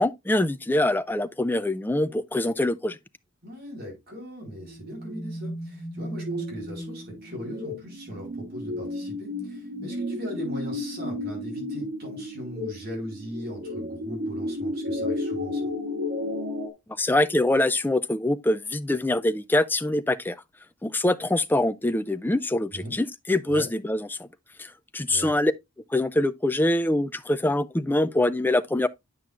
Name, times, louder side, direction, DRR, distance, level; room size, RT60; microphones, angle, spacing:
voice 1, 0.0-3.0 17.0-20.4 20.8-24.3 24.6-25.5 25.9-28.9, left 1 dB, 10° left, 0.3 m, -24 dB
voice 2, 3.4-15.7 22.7-23.0 23.5-23.7 25.1-25.3, left 1 dB, 45° right, 4.3 m, -39 dB
sound 1, 4.6-16.7, left 1 dB, 70° right, 2.2 m, -33 dB
9.2 x 5.9 x 2.4 m
head